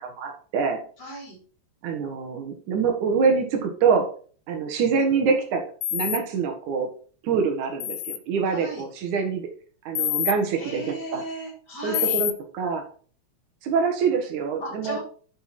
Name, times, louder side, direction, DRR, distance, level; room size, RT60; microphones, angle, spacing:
voice 1, 0.0-0.8 1.8-4.1 4.5-5.6 5.9-6.9 7.2-9.5 9.9-11.3 11.8-12.8 13.6-15.0, right 5 dB, 80° right, 4 dB, 3.0 m, -25 dB
voice 2, 1.0-1.4 8.5-8.8 10.6-12.2 14.6-15.0, right 1 dB, 35° left, -4 dB, 4.7 m, -35 dB
sound 1, 5.8-6.2 7.8-8.2 9.9-10.3 11.9-12.3, left 13 dB, 75° left, 1.4 m, -26 dB
10.5 x 6.0 x 4.3 m, 0.43 s
omnidirectional pair, 3.4 m